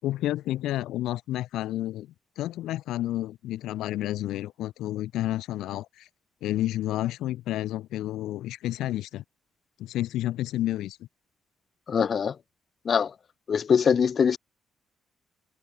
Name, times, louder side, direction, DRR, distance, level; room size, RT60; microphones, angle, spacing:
voice 1, 0.0-2.1 2.4-6.1 6.4-9.2 9.8-11.1, left 14 dB, 85° left, 4.2 m, -30 dB
voice 2, 11.9-12.4 12.9-13.1 13.5-14.4, left 7 dB, 50° left, 0.4 m, -22 dB
cardioid pair, 90°, 0 cm